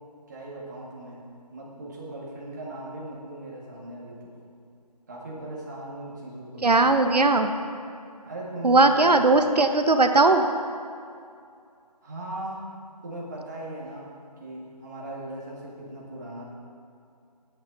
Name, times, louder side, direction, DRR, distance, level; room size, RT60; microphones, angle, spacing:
voice 1, 0.3-1.3 1.5-4.3 5.1-6.9 8.2-9.2 12.0-12.7 13.0-14.1 14.4-16.4, right 1 dB, 25° right, -5 dB, 2.0 m, -38 dB
voice 2, 6.6-7.5 8.6-10.5, right 2 dB, 80° right, 7 dB, 1.1 m, -19 dB
16.0 x 8.7 x 4.0 m, 2.4 s
figure-of-eight pair, 170°, 20 cm